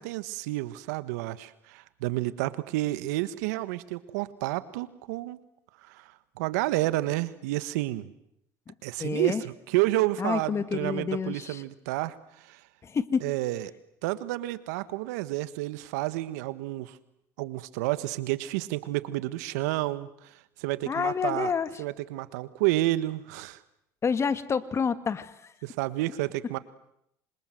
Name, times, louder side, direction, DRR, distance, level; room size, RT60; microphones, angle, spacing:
voice 1, 0.0-5.4 5.8-6.1 6.4-8.1 8.8-12.6 13.2-13.7 14.0-17.0 17.4-20.3 20.6-21.5 21.8-23.6 25.6-26.6, right 17 dB, 85° right, 15 dB, 1.4 m, -30 dB
voice 2, 9.0-9.4 10.2-11.6 12.8-13.2 20.9-21.7 24.0-25.3, left 6 dB, 30° left, 13 dB, 1.9 m, -28 dB
27.0 x 26.0 x 7.8 m, 0.78 s
supercardioid pair, 95°, 9 cm